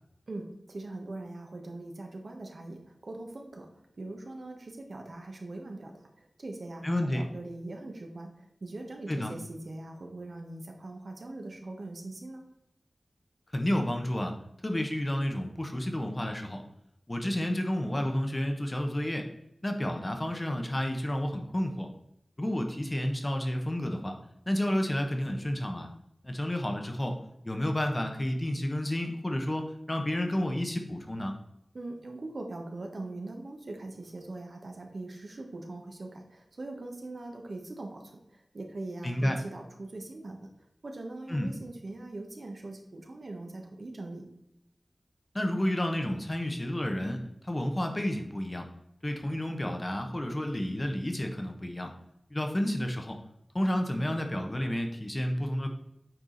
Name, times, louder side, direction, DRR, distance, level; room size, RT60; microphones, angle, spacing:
voice 1, 0.3-3.7 4.0-12.4 31.7-40.4 40.8-44.3, right 2 dB, 65° right, 2 dB, 1.4 m, -41 dB
voice 2, 6.8-7.2 9.1-9.3 13.5-14.3 14.6-16.6 17.1-19.3 19.6-21.9 22.4-24.1 24.5-25.9 26.2-27.2 27.4-31.3 39.0-39.4 41.3-41.5 45.3-48.7 49.0-51.9 52.3-53.2 53.5-55.7, left 1 dB, 25° left, 4 dB, 1.1 m, -30 dB
8.8 x 4.8 x 4.0 m, 0.79 s
wide cardioid pair, 80°, 0 cm